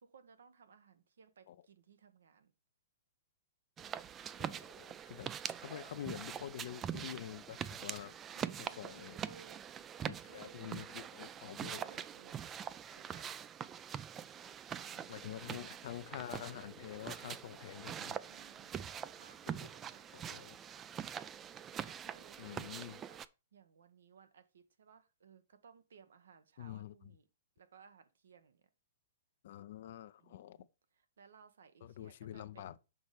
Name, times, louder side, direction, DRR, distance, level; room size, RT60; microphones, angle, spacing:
voice 1, 0.0-2.5 8.3-9.6 10.1-12.5 12.9-13.3 14.8-15.2 18.2-20.8 21.7-22.6 22.9-23.2 23.5-27.3 27.6-28.6 30.2-32.8, right 6 dB, 75° right, 1.0 m, -61 dB
sound 1, 3.8-23.3, right 8 dB, 20° right, 0.4 m, -44 dB
voice 2, 4.4-5.3 5.6-8.1 8.6-9.2 10.0-11.8 15.1-18.1 19.5-19.7 20.1-20.6 22.4-23.0 26.6-26.9 29.4-30.7 31.8-32.8, left 11 dB, 60° left, 0.5 m, -47 dB
6.0 x 4.1 x 4.9 m
hypercardioid pair, 115°, 0 cm